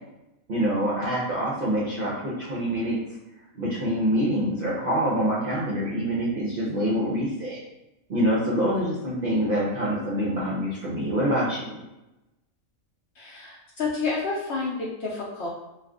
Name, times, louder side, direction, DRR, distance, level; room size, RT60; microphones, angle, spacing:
voice 1, 0.5-3.0 3.5-7.6 8.1-11.8, equal, 55° right, -6 dB, 0.6 m, -25 dB
voice 2, 13.2-15.5, left 4 dB, 65° left, -4 dB, 0.7 m, -30 dB
2.4 x 2.4 x 3.5 m, 0.95 s
omnidirectional pair, 1.5 m